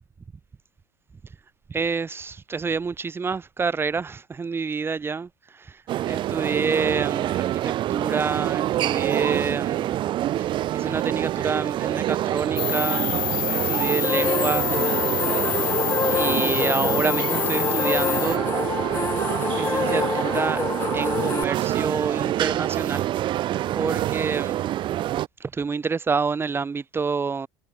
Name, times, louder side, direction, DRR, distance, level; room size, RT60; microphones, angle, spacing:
voice 1, 1.7-5.3 5.6-5.7 6.1-10.0 10.4-13.1 13.5-14.8 16.1-18.5 19.5-20.6 20.9-23.1 23.7-24.7 25.4-27.5, right 5 dB, 20° right, 4.9 m, -28 dB
sound 1, 5.9-25.3, right 13 dB, 50° right, 3.9 m, -26 dB
sound 2, 12.6-18.4, left 17 dB, 85° left, 1.3 m, -28 dB
sound 3, 14.0-21.4, left 5 dB, 20° left, 2.8 m, -27 dB
supercardioid pair, 100°, 11 cm